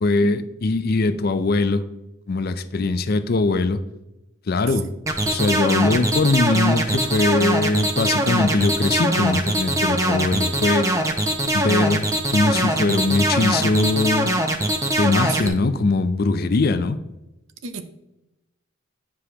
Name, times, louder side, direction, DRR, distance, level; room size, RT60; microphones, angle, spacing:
voice 1, 0.0-1.9 2.3-3.8 4.5-4.9 5.2-10.9 11.5-12.1 12.3-14.3 15.0-17.0, left 3 dB, 45° left, 12 dB, 0.4 m, -21 dB
sound 1, 5.1-15.5, right 1 dB, 15° right, 0.5 m, -22 dB
voice 2, 12.8-13.2 15.4-15.6 17.6-17.8, right 4 dB, 60° right, 9 dB, 0.6 m, -35 dB
9.7 x 4.8 x 2.9 m, 0.94 s
head